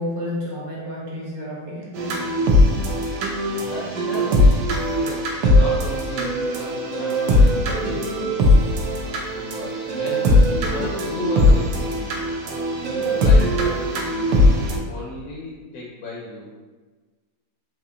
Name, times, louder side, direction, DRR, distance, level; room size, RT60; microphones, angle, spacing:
voice 1, 0.0-2.3, left 1 dB, 65° right, -4 dB, 1.3 m, -31 dB
sound 1, 1.9-14.8, left 1 dB, 85° right, 1.2 m, -19 dB
voice 2, 3.6-4.7 5.0-8.3 8.7-12.2 12.8-16.5, left 2 dB, 70° left, -3 dB, 1.0 m, -35 dB
4.2 x 2.8 x 2.4 m, 1.4 s
omnidirectional pair, 1.8 m